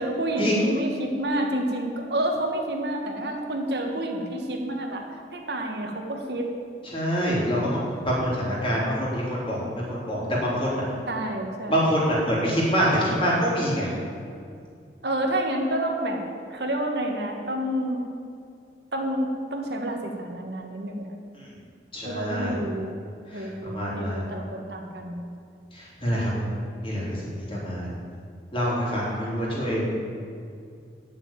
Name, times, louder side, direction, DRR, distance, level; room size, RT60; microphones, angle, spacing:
voice 1, 0.0-5.1 5.3-6.5 11.1-11.8 15.0-16.2 16.5-18.0 18.9-21.1 22.0-23.0 23.3-25.3 26.1-26.6, right 1 dB, 70° right, 2 dB, 1.5 m, -29 dB
voice 2, 6.8-10.8 11.7-13.9 21.4-21.5 21.9-22.6 23.3-24.2 25.7-26.5 26.8-27.9 28.5-30.0, equal, 30° left, -6 dB, 3.6 m, -26 dB
9.6 x 7.1 x 8.9 m, 2.3 s
head